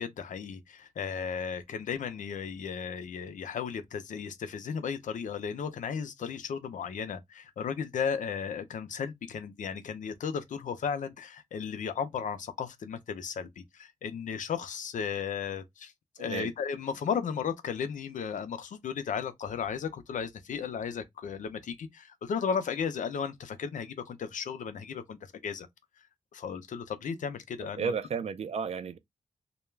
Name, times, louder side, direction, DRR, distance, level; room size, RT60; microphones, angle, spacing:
voice 1, 0.0-15.9 16.2-25.2 25.4-25.7 26.3-27.9, left 6 dB, 75° left, 0.5 m, -35 dB
voice 2, 27.6-29.0, right 6 dB, 55° right, 0.4 m, -33 dB
2.2 x 2.1 x 3.1 m
wide cardioid pair, 125°, 13 cm